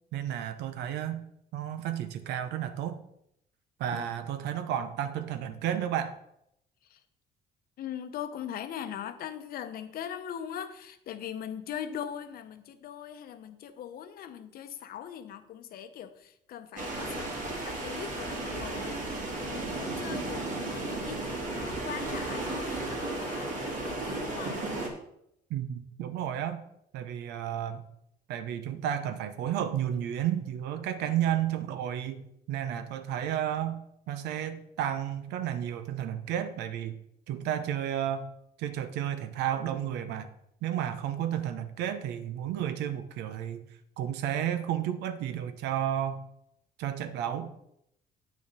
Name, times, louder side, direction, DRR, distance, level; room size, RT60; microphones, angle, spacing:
voice 1, 0.1-1.2 1.5-3.0 3.8-6.2 25.5-26.6 26.9-27.8 28.3-37.0 37.3-38.3 38.6-40.3 40.6-43.6 44.0-46.2 46.8-47.5, right 10 dB, 85° right, 11 dB, 0.8 m, -32 dB
voice 2, 7.8-17.3 17.6-19.0 19.4-24.7, left 9 dB, 60° left, 10 dB, 0.8 m, -40 dB
sound 1, 16.8-24.9, right 2 dB, 50° right, 2.3 m, -34 dB
8.6 x 6.1 x 4.2 m, 0.77 s
cardioid pair, 110°, 17 cm